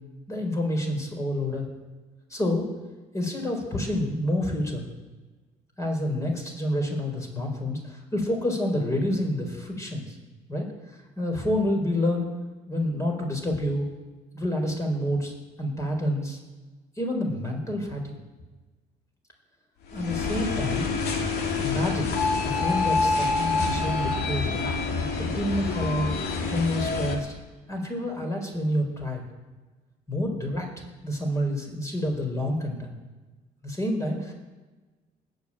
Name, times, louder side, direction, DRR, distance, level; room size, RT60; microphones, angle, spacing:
voice 1, 0.3-1.7 2.3-2.7 3.1-4.8 5.8-10.2 10.5-12.3 12.7-13.9 14.3-15.3 15.6-16.4 17.0-18.2 19.9-20.9 21.6-22.2 22.4-24.7 25.2-26.1 26.5-27.3 27.7-29.2 30.1-30.7 31.0-32.9 33.6-34.3, left 1 dB, 20° left, 2 dB, 4.5 m, -28 dB
sound 1, 19.9-27.2, left 4 dB, 75° left, 2.7 m, -27 dB
19.5 x 6.8 x 8.8 m, 1.2 s
cardioid pair, 110°, 17 cm